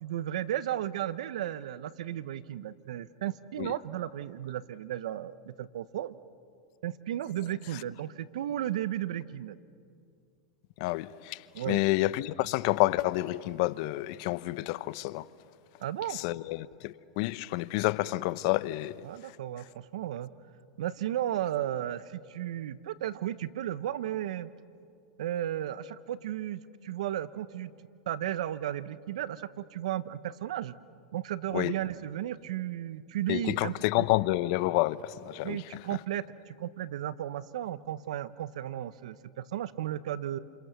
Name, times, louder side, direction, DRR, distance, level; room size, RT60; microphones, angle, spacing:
voice 1, 0.0-6.1 6.8-9.6 11.5-11.8 15.8-16.2 19.0-20.3 20.8-24.5 25.2-27.7 28.1-30.7 31.1-34.0 35.4-40.4, right 12 dB, 75° right, 1.0 m, -34 dB
voice 2, 10.8-15.3 16.1-19.0 31.5-31.7 33.3-35.6, left 18 dB, 60° left, 0.8 m, -29 dB
29.5 x 28.5 x 6.9 m
hypercardioid pair, 105°, 4 cm